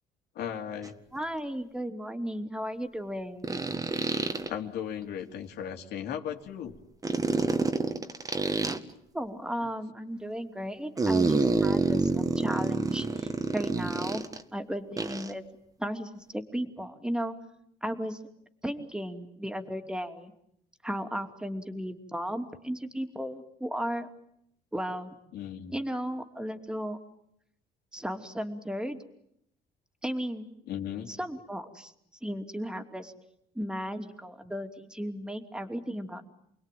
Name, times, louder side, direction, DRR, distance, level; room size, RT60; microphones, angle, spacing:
voice 1, 0.3-1.0 4.5-6.8 25.3-25.7 30.7-31.1, left 9 dB, 75° left, 3 dB, 3.4 m, -36 dB
sound 1, 0.8-0.9 3.4-4.5 7.0-8.8 11.0-14.4 15.0-15.3, right 3 dB, 20° right, 1.9 m, -27 dB
voice 2, 1.1-3.6 9.1-14.2 14.5-15.4 15.8-17.3 17.8-18.2 18.6-20.3 20.8-24.1 24.7-25.1 25.7-27.0 27.9-29.0 30.0-30.5 31.1-31.9 32.2-33.1 33.5-36.3, equal, 5° right, 6 dB, 2.9 m, -35 dB
29.0 x 21.0 x 9.4 m, 0.75 s
cardioid pair, 110°, 17 cm